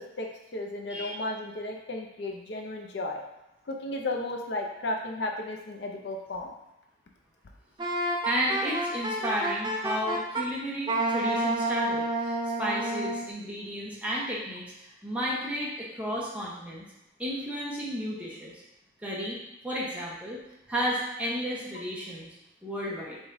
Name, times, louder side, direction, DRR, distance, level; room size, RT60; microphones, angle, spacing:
voice 1, 0.0-3.2 3.7-6.6 10.1-10.2, left 2 dB, 65° left, 2 dB, 0.5 m, -34 dB
voice 2, 0.9-1.2 8.2-16.8 17.2-18.5 19.0-20.4 20.7-22.3 22.6-23.2, equal, 10° right, -6 dB, 0.9 m, -33 dB
Wind instrument woodwind instrument, 7.8-10.5 10.9-13.3, right 2 dB, 25° right, 0.4 m, -29 dB
4.7 x 3.7 x 2.6 m, 0.89 s
head